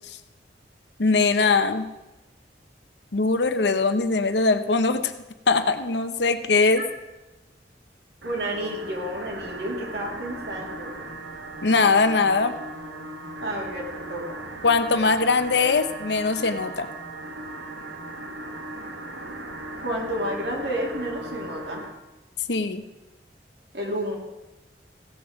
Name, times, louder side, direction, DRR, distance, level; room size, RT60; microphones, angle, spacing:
voice 1, 1.0-1.9 3.1-5.1 5.5-6.8 11.6-12.6 14.6-16.9 22.5-22.8, left 4 dB, 75° left, 9 dB, 0.8 m, -21 dB
voice 2, 8.2-10.9 13.4-14.4 19.8-21.8 23.7-24.2, equal, 70° right, -2 dB, 2.9 m, -30 dB
sound 1, 8.2-21.9, right 1 dB, 90° right, 1.4 m, -38 dB
16.5 x 7.0 x 5.2 m, 1.0 s
head